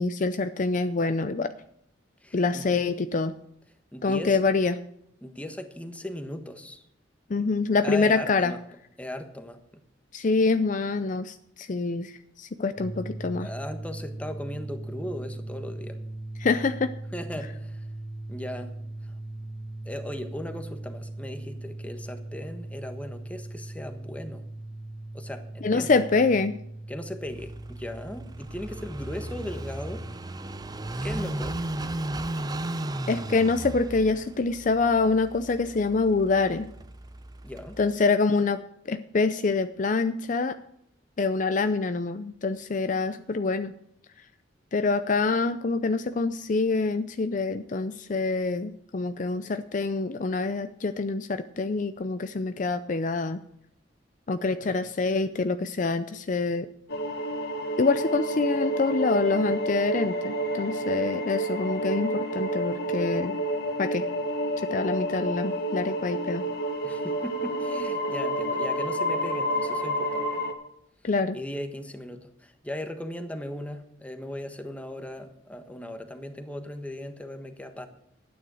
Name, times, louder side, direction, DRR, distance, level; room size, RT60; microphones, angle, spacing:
voice 1, 0.0-1.5 2.3-3.3 4.0-4.8 7.3-8.5 10.1-13.5 16.4-16.9 25.6-26.6 33.1-36.7 37.8-38.6 38.9-40.6 41.2-43.7 44.7-53.4 54.3-56.7 57.8-63.4 63.8-64.0 64.7-66.4 71.0-71.4, left 3 dB, 45° left, 10 dB, 0.5 m, -26 dB
voice 2, 2.2-2.7 3.9-4.4 5.2-6.8 7.8-8.6 9.0-9.6 13.4-16.0 17.1-17.9 18.3-18.7 19.0-19.1 19.8-24.4 25.1-26.0 26.9-30.0 31.0-31.6 37.4-37.8 54.5-54.8 66.8-70.3 71.3-77.9, left 1 dB, 5° left, 6 dB, 1.2 m, -38 dB
sound 1, 12.8-30.1, right 2 dB, 50° right, 1.9 m, -39 dB
Car passing by / Idling, 27.3-38.0, right 1 dB, 20° right, 0.6 m, -36 dB
sound 2, 56.9-70.5, right 1 dB, 60° left, 1.6 m, -29 dB
12.0 x 9.5 x 6.3 m, 0.75 s
head